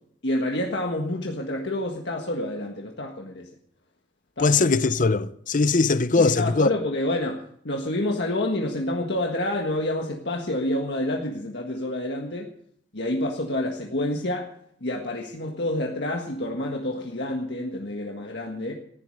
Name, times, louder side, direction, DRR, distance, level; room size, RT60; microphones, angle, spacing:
voice 1, 0.2-3.5 4.4-4.6 6.1-12.5 12.9-14.5 14.8-18.7, left 1 dB, 65° left, 1.7 m, -28 dB
voice 2, 4.4-6.7, left 3 dB, 45° left, 0.7 m, -20 dB
15.5 x 11.0 x 6.5 m
head